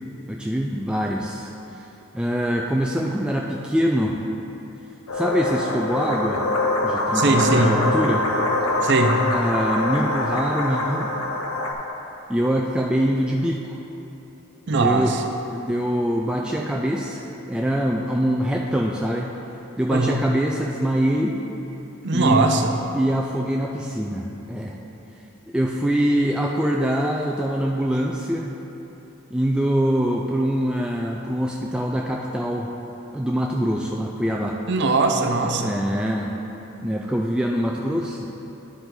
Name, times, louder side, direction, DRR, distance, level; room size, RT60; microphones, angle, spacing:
voice 1, 0.3-1.5 2.1-4.2 5.1-6.4 6.8-8.3 9.3-11.1 12.3-13.8 14.7-15.1 15.5-17.2 17.5-19.3 19.8-21.4 22.1-22.5 22.9-24.8 25.5-28.5 29.3-32.7 33.1-34.6 35.4-36.3 36.8-38.3, equal, 5° right, -1 dB, 0.3 m, -24 dB
sound 1, 5.1-11.7, left 2 dB, 85° left, 0.8 m, -24 dB
voice 2, 7.1-7.7 8.8-9.2 14.7-15.2 19.9-20.2 22.0-22.7 34.7-35.7, right 3 dB, 55° right, 5 dB, 0.6 m, -20 dB
11.0 x 4.9 x 3.9 m, 3.0 s
head